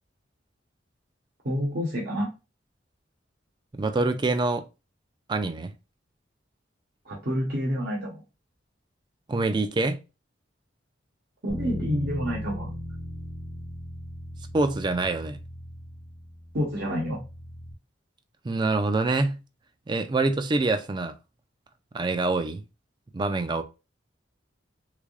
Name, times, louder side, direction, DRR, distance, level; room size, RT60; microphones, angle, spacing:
voice 1, 1.4-2.3 7.1-8.2 11.4-12.7 16.5-17.2, equal, 55° right, 0.9 m, -28 dB
voice 2, 3.7-4.6 5.3-5.7 9.3-10.0 14.5-15.4 18.4-19.4 19.9-21.1 21.9-22.6 23.1-23.6, right 3 dB, 25° right, 0.3 m, -25 dB
Bass guitar, 11.5-17.7, left 1 dB, 30° left, 0.5 m, -38 dB
3.5 x 3.3 x 2.3 m
head